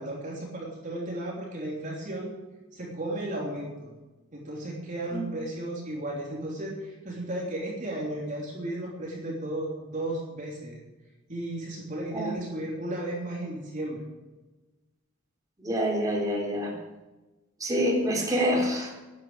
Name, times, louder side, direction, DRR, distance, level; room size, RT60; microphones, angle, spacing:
voice 1, 0.0-2.3 2.7-3.9 4.3-10.8 11.3-14.0, right 1 dB, 40° right, -3 dB, 3.2 m, -34 dB
voice 2, 15.6-16.8 17.6-18.9, equal, 15° right, -2 dB, 3.6 m, -26 dB
11.5 x 9.5 x 8.5 m, 1.1 s
head